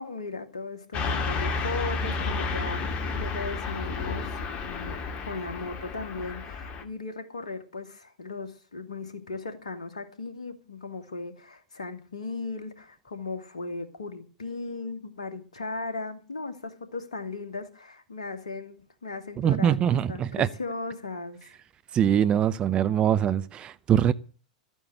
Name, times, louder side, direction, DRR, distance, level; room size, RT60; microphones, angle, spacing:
voice 1, 0.0-5.0 5.2-21.5, left 3 dB, 75° left, 2.5 m, -37 dB
Car passing by / Truck, 0.9-6.8, left 4 dB, 35° left, 2.1 m, -31 dB
voice 2, 19.4-20.5 21.9-24.1, right 9 dB, 30° right, 0.7 m, -23 dB
13.5 x 9.0 x 8.2 m
figure-of-eight pair, 95°, 4 cm